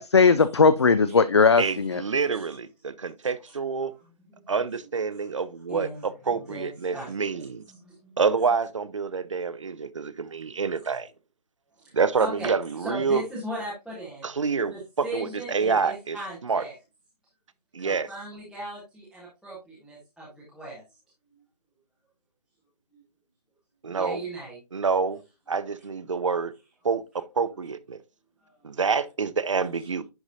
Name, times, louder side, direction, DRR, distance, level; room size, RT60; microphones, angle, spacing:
voice 1, 0.0-2.0, left 4 dB, 45° left, 0.4 m, -18 dB
voice 2, 1.6-3.9 4.5-7.6 8.2-11.1 11.9-13.2 14.2-16.2 16.4-16.6 17.7-18.1 23.8-24.2 24.7-25.2 25.5-26.5 26.8-28.0 28.6-30.0, right 5 dB, 50° right, 0.6 m, -27 dB
voice 3, 5.7-6.1 6.3-7.1 7.7-8.1 11.8-11.9 12.2-14.3 14.7-16.7 17.8-20.8 23.9-24.6 28.4-28.8, right 1 dB, ahead, 0.6 m, -38 dB
10.5 x 4.0 x 2.5 m
figure-of-eight pair, 150°, 21 cm